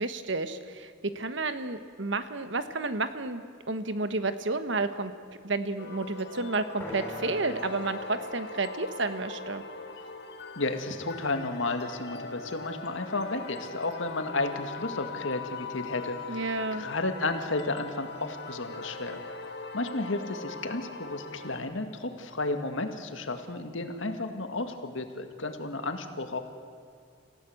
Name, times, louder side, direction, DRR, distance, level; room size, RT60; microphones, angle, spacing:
voice 1, 0.0-5.1 5.4-9.6 16.3-16.8, right 3 dB, 65° right, 10 dB, 1.3 m, -31 dB
sound 1, 5.8-21.6, left 4 dB, 55° left, 1.7 m, -41 dB
sound 2, 6.8-10.7, right 1 dB, 10° left, 7.0 m, -44 dB
voice 2, 10.6-19.2 19.7-26.4, left 2 dB, 75° left, 7 dB, 2.0 m, -33 dB
27.5 x 16.5 x 7.9 m, 2.3 s
head